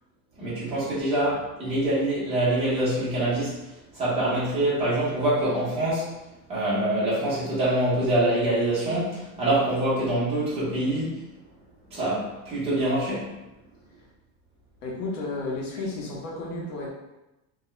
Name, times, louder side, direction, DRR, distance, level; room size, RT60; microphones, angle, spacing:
voice 1, 0.4-3.6 3.9-6.1 6.5-11.2 11.9-13.3, right 1 dB, 15° right, -9 dB, 0.7 m, -25 dB
voice 2, 14.8-16.9, left 2 dB, 70° left, -3 dB, 1.0 m, -32 dB
2.3 x 2.2 x 2.9 m, 0.97 s
cardioid pair, 170°, 46 cm